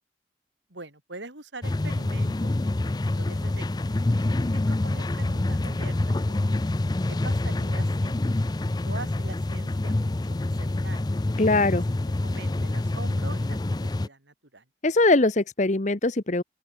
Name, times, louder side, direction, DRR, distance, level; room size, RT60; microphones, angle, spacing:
voice 1, 0.7-6.0 6.3-6.7 7.1-8.2 8.8-11.1 12.2-14.6, right 2 dB, 85° right, 5.4 m, -44 dB
sound 1, 1.6-14.1, left 2 dB, 20° left, 0.4 m, -26 dB
voice 2, 11.4-11.8 14.8-16.4, left 2 dB, 40° left, 1.0 m, -21 dB
open air
head